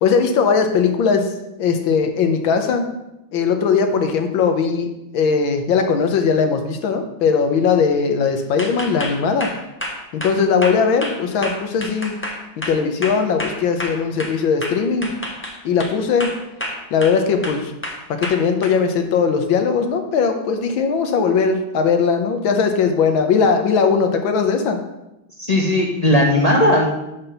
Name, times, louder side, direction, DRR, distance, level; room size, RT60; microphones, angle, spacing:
voice 1, 0.0-1.3 1.6-2.8 3.3-9.5 10.1-12.1 12.7-15.1 15.6-16.3 16.9-17.7 18.1-24.8, left 5 dB, 75° left, 6 dB, 1.6 m, -19 dB
sound 1, 8.6-14.3 14.6-15.9 16.2-17.2 17.4-18.7, equal, 10° left, 0.7 m, -29 dB
voice 2, 25.4-26.9, left 1 dB, 50° left, -1 dB, 0.4 m, -16 dB
5.8 x 5.8 x 6.7 m, 0.91 s
omnidirectional pair, 2.2 m